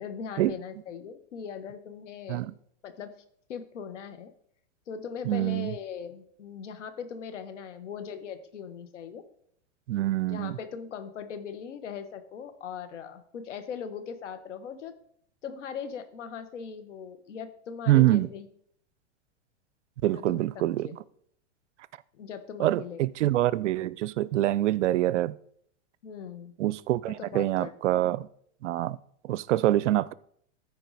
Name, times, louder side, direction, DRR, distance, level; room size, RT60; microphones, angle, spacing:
voice 1, 0.0-2.4 2.8-3.1 3.5-4.3 4.9-9.2 10.3-14.9 15.4-18.5 20.1-20.4 20.8-21.0 22.1-23.3 26.0-26.5 27.1-27.7, left 7 dB, 85° left, 1.3 m, -39 dB
voice 2, 5.3-5.7 9.9-10.6 17.9-18.3 20.0-20.9 22.6-25.3 26.6-28.3 28.6-29.0 29.2-30.1, right 14 dB, 80° right, 0.5 m, -25 dB
14.0 x 4.7 x 4.1 m
hypercardioid pair, 135°, 35 cm